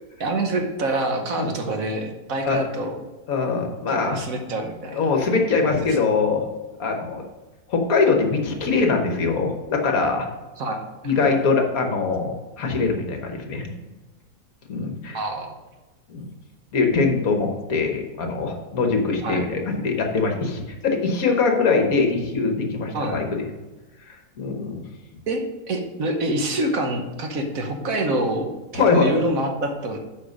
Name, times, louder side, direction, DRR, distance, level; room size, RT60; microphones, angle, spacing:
voice 1, 0.2-3.0 3.9-5.0 5.6-6.0 10.6-10.8 11.2-11.4 15.1-15.6 19.2-19.4 22.9-23.2 25.3-30.0, right 2 dB, 60° right, 4 dB, 1.4 m, -26 dB
voice 2, 3.3-4.2 4.9-6.5 6.8-7.2 7.7-10.3 11.0-13.6 14.7-15.2 16.1-16.3 16.7-23.5 24.1-24.8 28.7-29.1, left 4 dB, 65° left, 3 dB, 1.6 m, -22 dB
8.3 x 5.1 x 5.3 m, 1.1 s
omnidirectional pair, 1.7 m